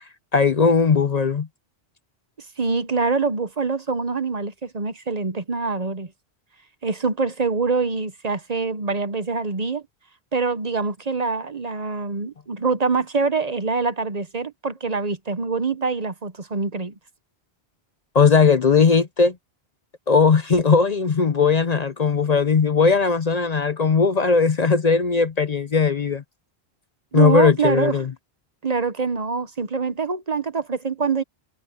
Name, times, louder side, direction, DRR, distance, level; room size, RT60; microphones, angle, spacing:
voice 1, 0.3-1.5 18.1-19.3 20.1-26.2 27.1-28.1, left 5 dB, 45° left, 0.7 m, -18 dB
voice 2, 2.6-6.1 6.8-9.8 10.3-16.9 27.1-28.0 28.6-31.2, right 4 dB, 40° right, 1.0 m, -24 dB
omnidirectional pair, 1.1 m